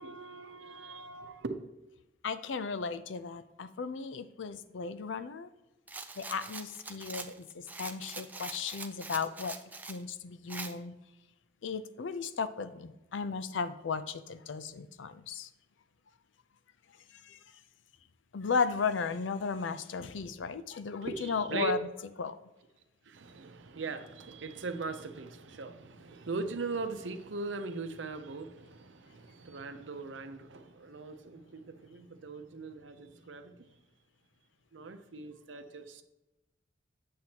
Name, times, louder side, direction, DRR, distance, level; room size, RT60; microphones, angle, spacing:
voice 1, 0.0-1.6 21.0-21.7 23.1-33.7 34.7-36.0, right 3 dB, 80° right, 0.7 m, -40 dB
voice 2, 2.2-5.5 6.2-9.6 9.9-10.9 11.6-15.5 17.2-17.4 18.3-21.8 22.2-22.4, left 5 dB, 85° left, 0.5 m, -35 dB
Rattle, 5.9-10.0 10.5-10.7, right 3 dB, 10° right, 0.4 m, -43 dB
7.8 x 7.5 x 2.9 m
head